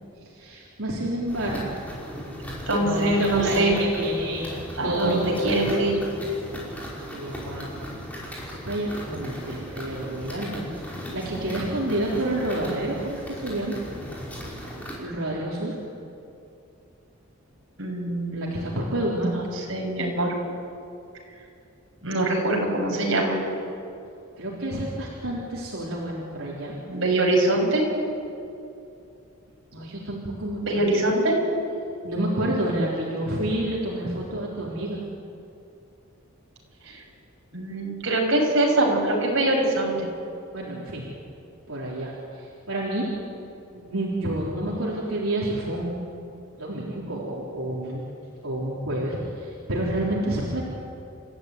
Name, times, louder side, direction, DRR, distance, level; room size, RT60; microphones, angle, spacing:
voice 1, 0.2-1.7 2.7-4.4 4.8-6.1 7.1-7.7 8.3-13.8 15.0-15.8 18.3-19.3 24.4-26.7 29.7-30.9 32.0-35.0 40.5-41.1 41.7-43.1 43.7-46.0 46.6-48.0 48.4-50.6, right 1 dB, 85° right, -5 dB, 3.8 m, -29 dB
sound 1, 1.3-14.9, equal, 5° left, 5.5 m, -37 dB
voice 2, 2.7-3.7 4.8-6.0 17.8-18.7 19.3-19.4 19.7-20.4 22.0-23.4 26.9-27.8 30.6-31.3 36.8-37.0 37.5-40.0, right 1 dB, 60° right, -1 dB, 6.5 m, -23 dB
30.0 x 15.0 x 9.4 m, 2.6 s
head